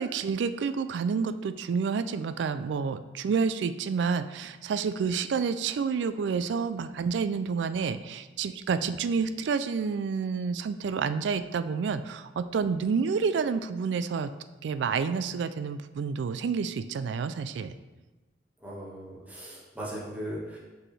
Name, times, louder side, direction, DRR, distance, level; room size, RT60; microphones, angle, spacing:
voice 1, 0.0-14.3 14.6-17.7, right 5 dB, 70° right, 12 dB, 0.3 m, -29 dB
voice 2, 18.6-20.6, equal, 10° right, -7 dB, 1.5 m, -38 dB
6.1 x 4.8 x 3.2 m, 1.2 s
head